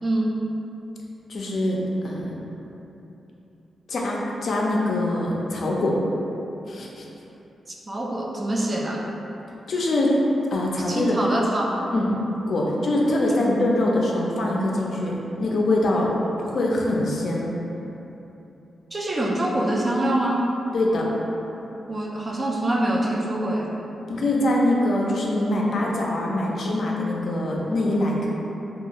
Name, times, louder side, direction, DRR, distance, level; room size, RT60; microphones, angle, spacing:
voice 1, 0.0-0.3 7.7-9.0 10.9-11.9 18.9-20.5 21.9-23.7, right 1 dB, 30° right, -2 dB, 0.3 m, -25 dB
voice 2, 1.3-1.8 2.0-2.3 3.9-6.0 6.7-7.1 9.7-10.1 10.5-11.2 11.9-12.1 12.5-16.1 16.4-17.5 20.7-21.1 24.1-28.3, left 1 dB, 60° left, -3 dB, 0.4 m, -23 dB
2.4 x 2.3 x 2.8 m, 3.0 s
cardioid pair, 95°, 0 cm